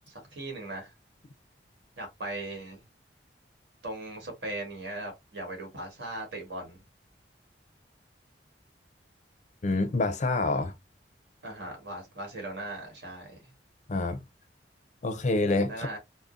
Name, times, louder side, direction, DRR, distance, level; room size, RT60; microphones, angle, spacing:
voice 1, 0.1-0.9 2.0-2.8 3.8-6.8 11.4-13.5 15.7-16.0, right 2 dB, 70° right, 1.5 m, -38 dB
voice 2, 9.6-10.7 13.9-14.2 15.0-15.9, left 2 dB, 40° left, 0.5 m, -27 dB
3.6 x 2.0 x 2.4 m
head